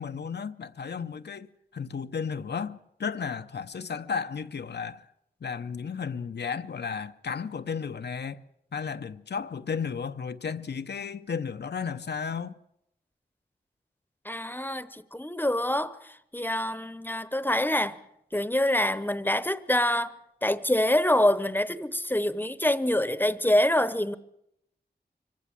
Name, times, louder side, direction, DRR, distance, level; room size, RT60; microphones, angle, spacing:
voice 1, 0.0-5.1 5.4-8.4 8.7-12.5, left 6 dB, 75° left, 0.7 m, -34 dB
voice 2, 14.2-18.0 18.3-20.1 20.4-24.1, left 1 dB, 10° left, 0.9 m, -26 dB
25.0 x 16.5 x 7.5 m
wide cardioid pair, 85°, 17 cm